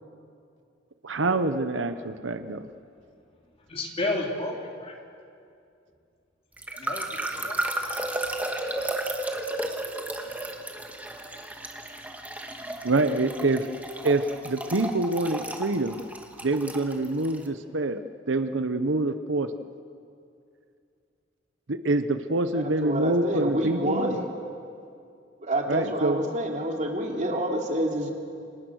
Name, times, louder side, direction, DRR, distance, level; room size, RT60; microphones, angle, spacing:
voice 1, 1.0-2.7 12.8-13.7 14.0-16.0 16.4-18.0 18.3-19.5 21.7-24.2 25.7-26.2, right 2 dB, 80° right, 10 dB, 1.0 m, -26 dB
voice 2, 3.7-5.0 6.7-7.6 10.2-10.3, left 2 dB, 30° left, 0 dB, 3.5 m, -32 dB
sound 1, 6.6-17.4, right 1 dB, 10° right, 2.0 m, -33 dB
voice 3, 22.5-24.3 25.4-28.1, right 1 dB, 40° right, 1 dB, 3.1 m, -28 dB
29.0 x 26.5 x 6.5 m, 2.5 s
head